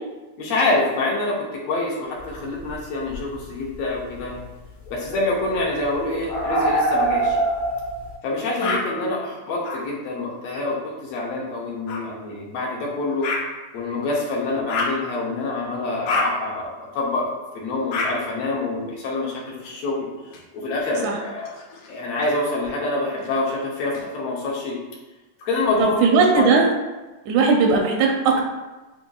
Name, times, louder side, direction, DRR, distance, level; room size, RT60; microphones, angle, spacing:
voice 1, 0.4-4.3 4.9-7.4 8.2-13.3 13.7-20.1 20.5-21.6 21.9-24.8 25.4-26.0 26.3-26.6, left 2 dB, 70° left, -4 dB, 1.7 m, -26 dB
sound 1, 2.7-2.8 3.1-3.4 4.3-4.4 4.9-8.1, right 2 dB, 55° left, 1.1 m, -24 dB
sound 2, 8.6-8.8 9.6-9.8 11.9-12.0 13.2-13.4 14.7-15.0 16.1-16.3 17.9-18.1 19.6-20.4 21.4-22.3 23.2-24.0, left 3 dB, 85° left, 1.3 m, -28 dB
voice 2, 25.8-26.7 27.3-28.4, right 4 dB, 85° right, 1 dB, 1.9 m, -18 dB
7.1 x 2.5 x 2.3 m, 1.1 s
omnidirectional pair, 3.4 m